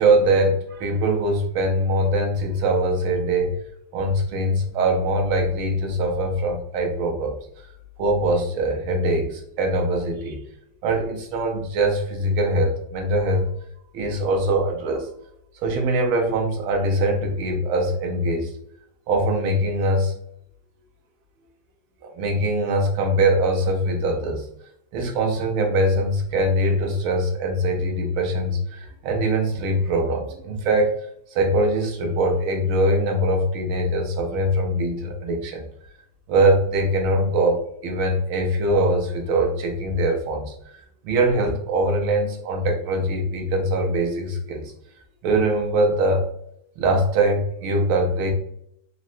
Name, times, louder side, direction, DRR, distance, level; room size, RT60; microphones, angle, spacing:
voice 1, 0.0-3.6 3.9-7.7 8.0-10.4 10.8-13.5 13.9-15.1 15.6-18.5 19.1-20.1 22.0-24.5 24.9-30.9 31.3-35.7 36.3-40.5 41.0-44.7 45.2-46.3 46.8-48.3, right 1 dB, 90° right, 2 dB, 1.6 m, -22 dB
4.0 x 2.0 x 2.5 m, 0.72 s
omnidirectional pair, 2.2 m